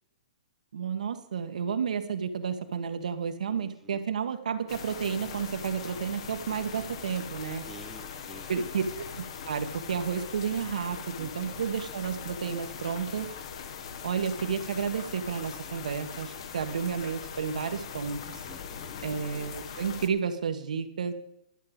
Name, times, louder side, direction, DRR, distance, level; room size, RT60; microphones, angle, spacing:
voice 1, 0.7-7.7 8.5-13.3 14.0-18.4 19.0-21.1, right 6 dB, 80° right, 7 dB, 1.5 m, -31 dB
voice 2, 3.5-4.0 7.6-8.7 11.2-11.6 18.5-19.1, right 3 dB, 5° right, 4 dB, 0.7 m, -51 dB
sound 1, 4.7-20.1, left 7 dB, 45° left, 1.2 m, -41 dB
12.0 x 6.6 x 8.8 m, 0.82 s
hypercardioid pair, 170°, 4 cm